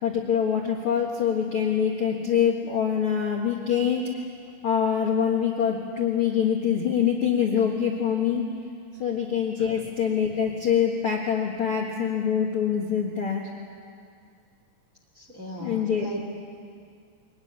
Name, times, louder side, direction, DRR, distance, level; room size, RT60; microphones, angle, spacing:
voice 1, 0.0-4.0 4.6-8.4 9.0-13.5 15.6-16.2, left 8 dB, 80° left, -1 dB, 1.2 m, -24 dB
voice 2, 15.1-16.2, left 1 dB, 30° right, 0 dB, 1.6 m, -37 dB
23.5 x 19.0 x 9.8 m, 2.3 s
omnidirectional pair, 5.4 m